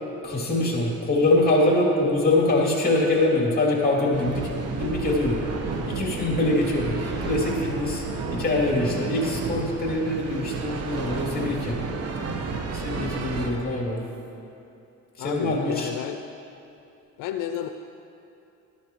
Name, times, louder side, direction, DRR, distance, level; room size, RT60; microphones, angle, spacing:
voice 1, 0.2-4.5 4.8-5.4 5.9-8.0 8.3-11.8 12.4-14.0 15.2-15.9, left 2 dB, 30° left, -2 dB, 2.9 m, -24 dB
sound 1, 4.1-13.5, right 4 dB, 50° right, 1.2 m, -31 dB
voice 2, 15.2-16.2 17.2-17.7, left 10 dB, 75° left, 7 dB, 0.5 m, -31 dB
13.5 x 12.0 x 3.1 m, 2.8 s
cardioid pair, 90°, 32 cm